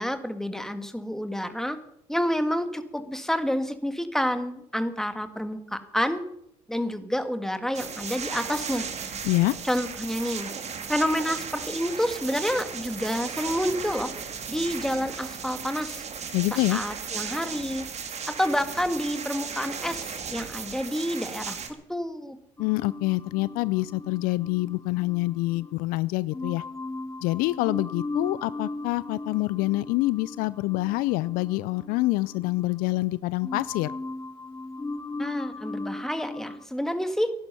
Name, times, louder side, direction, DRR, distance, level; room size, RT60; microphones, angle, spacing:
voice 1, 0.0-1.8 2.1-6.2 6.7-8.9 9.6-10.5 10.9-14.1 14.5-16.0 16.7-17.8 18.3-21.6 21.9-22.4 35.2-37.3, equal, 5° left, 9 dB, 1.8 m, -28 dB
sound 1, 7.7-21.7, right 6 dB, 45° right, 2.1 m, -36 dB
voice 2, 9.2-9.5 16.3-16.8 22.6-26.6 27.2-33.9, left 20 dB, 65° left, 19 dB, 0.4 m, -26 dB
sound 2, 22.6-25.8 26.3-33.1 33.4-36.7, left 2 dB, 20° left, 0.8 m, -37 dB
16.0 x 11.0 x 5.6 m, 0.77 s
hypercardioid pair, 55°, 16 cm